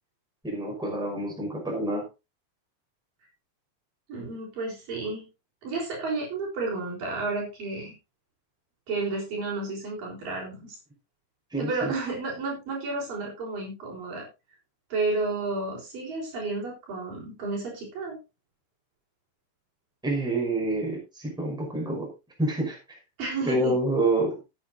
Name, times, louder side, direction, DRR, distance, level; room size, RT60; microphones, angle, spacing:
voice 1, 0.4-2.0 11.5-11.9 20.0-22.1 22.4-22.8 23.5-24.4, right 2 dB, ahead, -1 dB, 5.0 m, -27 dB
voice 2, 4.1-5.3 5.6-7.9 8.9-10.8 11.6-14.3 14.9-18.2 23.2-23.8, right 3 dB, 55° right, -2 dB, 5.6 m, -31 dB
17.5 x 8.7 x 2.7 m, 0.26 s
omnidirectional pair, 4.8 m